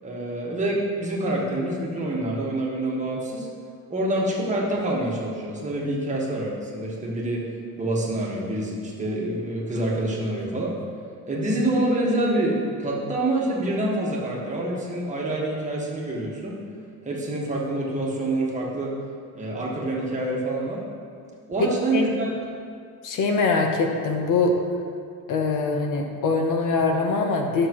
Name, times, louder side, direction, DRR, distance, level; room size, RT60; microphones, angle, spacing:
voice 1, 0.0-3.5 3.9-7.5 7.8-10.8 11.2-16.6 17.0-18.9 19.3-20.8 21.5-22.3, right 1 dB, 20° right, -4 dB, 1.4 m, -26 dB
voice 2, 21.6-22.0 23.0-24.5 25.3-27.7, left 3 dB, 65° left, 3 dB, 0.9 m, -23 dB
11.5 x 6.6 x 3.0 m, 2.2 s
cardioid pair, 145°, 34 cm